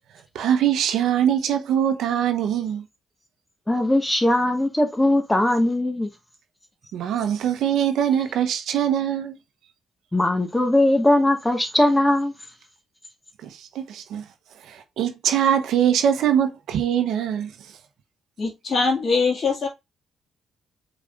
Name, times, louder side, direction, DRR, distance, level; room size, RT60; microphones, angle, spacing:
voice 1, 0.3-2.8 6.9-9.4 13.4-14.2 14.6-17.8, right 9 dB, 80° right, 0.8 m, -23 dB
voice 2, 3.7-6.1 10.1-12.3, left 1 dB, 10° left, 1.4 m, -20 dB
voice 3, 18.4-19.7, left 4 dB, 45° left, 2.1 m, -22 dB
5.0 x 4.0 x 2.4 m
cardioid pair, 90°, 0 cm